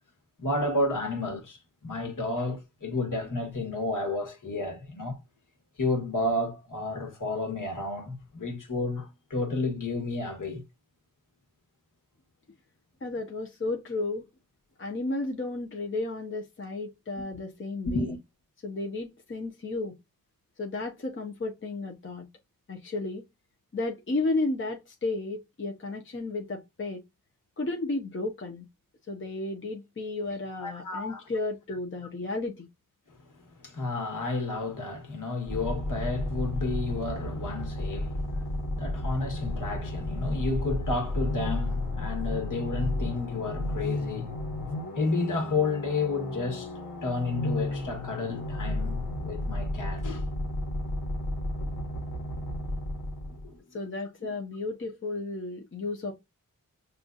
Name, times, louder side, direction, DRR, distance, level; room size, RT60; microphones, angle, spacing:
voice 1, 0.4-5.2 5.8-10.6 17.9-18.2 30.6-31.2 33.3-44.3 45.0-46.7 47.0-50.3 53.3-53.6, left 3 dB, 60° left, 1.6 m, -31 dB
voice 2, 13.0-14.3 14.8-18.1 18.6-20.0 20.6-22.3 22.7-23.2 23.7-27.0 27.6-28.6 29.1-32.7 53.7-56.1, left 2 dB, 35° left, 0.9 m, -33 dB
sound 1, 35.5-53.5, left 1 dB, 80° left, 1.2 m, -33 dB
5.6 x 2.6 x 2.4 m
cardioid pair, 65°, 35 cm